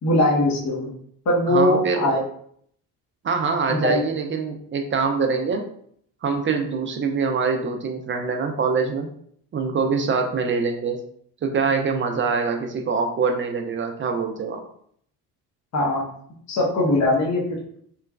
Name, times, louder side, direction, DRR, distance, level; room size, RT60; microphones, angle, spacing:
voice 1, 0.0-0.9 1.3-2.2 3.7-4.0 15.7-16.0 16.5-17.4, left 1 dB, 40° left, -3 dB, 0.8 m, -20 dB
voice 2, 1.5-2.1 3.2-5.6 6.2-9.1 9.5-11.0 11.4-14.6, right 5 dB, 30° right, 4 dB, 0.4 m, -24 dB
3.0 x 2.2 x 2.3 m, 0.64 s
supercardioid pair, 65°, 44 cm